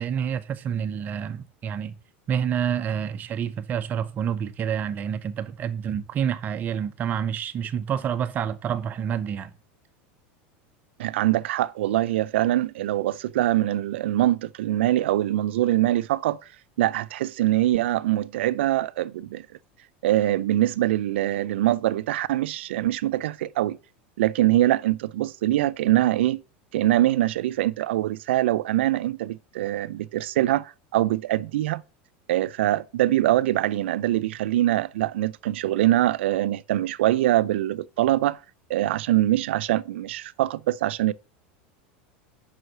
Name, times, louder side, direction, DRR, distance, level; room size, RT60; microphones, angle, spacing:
voice 1, 0.0-1.9 2.3-9.5, right 8 dB, 30° right, 0.7 m, -28 dB
voice 2, 11.0-16.4 16.8-19.4 20.0-23.8 24.2-26.4 26.7-31.8 32.3-38.4 38.7-41.1, right 14 dB, 90° right, 0.4 m, -23 dB
5.6 x 4.8 x 6.5 m
supercardioid pair, 140°, 6 cm